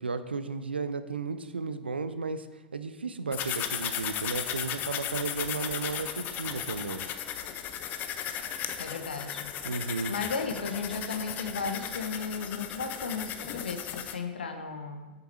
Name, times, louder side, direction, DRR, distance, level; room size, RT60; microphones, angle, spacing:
voice 1, 0.0-2.5 2.7-7.0 9.6-10.1, right 4 dB, 80° right, 11 dB, 0.5 m, -34 dB
sound 1, 3.3-14.1, left 9 dB, 35° left, 0.6 m, -36 dB
voice 2, 8.8-9.5 10.1-15.1, left 4 dB, 70° left, 7 dB, 0.9 m, -35 dB
8.3 x 6.7 x 4.2 m, 1.2 s
figure-of-eight pair, 95°, 6 cm